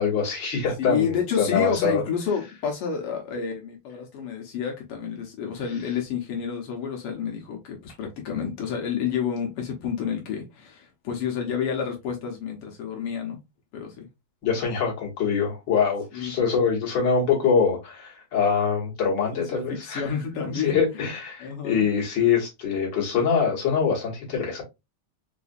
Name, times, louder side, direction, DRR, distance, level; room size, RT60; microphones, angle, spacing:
voice 1, 0.0-2.0 14.4-20.0 20.6-24.6, left 6 dB, 55° left, 2.1 m, -24 dB
voice 2, 0.8-13.4 13.7-14.1 16.1-16.3 19.3-20.8 21.4-21.8, left 7 dB, 90° left, 1.9 m, -29 dB
4.8 x 2.4 x 2.5 m
omnidirectional pair, 2.4 m